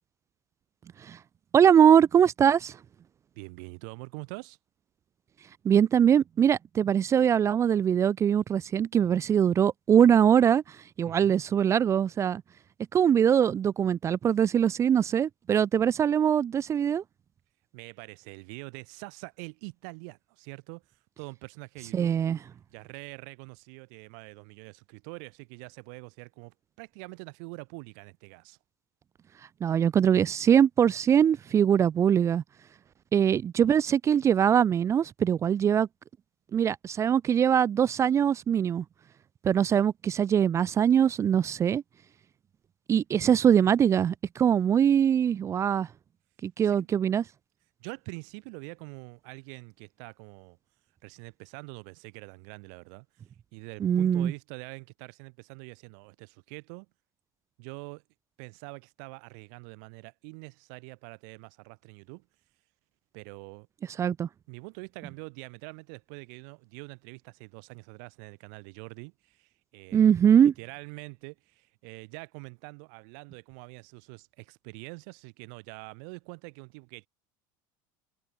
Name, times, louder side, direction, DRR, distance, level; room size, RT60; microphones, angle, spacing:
voice 1, 1.5-2.8 5.6-10.6 11.0-12.4 12.9-17.0 21.9-22.4 29.6-32.4 33.1-35.9 36.5-38.8 39.4-41.8 42.9-45.9 46.4-47.2 53.8-54.3 64.0-64.3 69.9-70.5, right 8 dB, 30° right, 0.6 m, -22 dB
voice 2, 3.3-4.6 11.0-11.4 17.7-22.2 22.7-28.6 46.6-46.9 47.8-50.6 51.0-53.2 53.5-56.9 57.6-58.0 58.4-62.3 63.1-63.7 64.5-77.1, right 38 dB, 75° right, 7.9 m, -45 dB
supercardioid pair, 120°, 10 cm